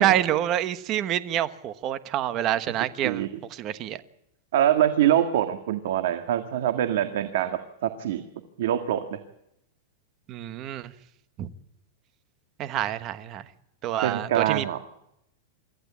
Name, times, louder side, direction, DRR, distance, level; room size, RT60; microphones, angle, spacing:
voice 1, 0.0-4.0 10.3-10.9 11.4-11.5 12.6-13.4 13.8-14.6, right 12 dB, 30° right, 1.2 m, -27 dB
voice 2, 4.5-8.2 8.6-9.2 14.0-14.8, right 11 dB, 65° right, 1.8 m, -24 dB
25.0 x 15.0 x 8.5 m
supercardioid pair, 165°, 0 cm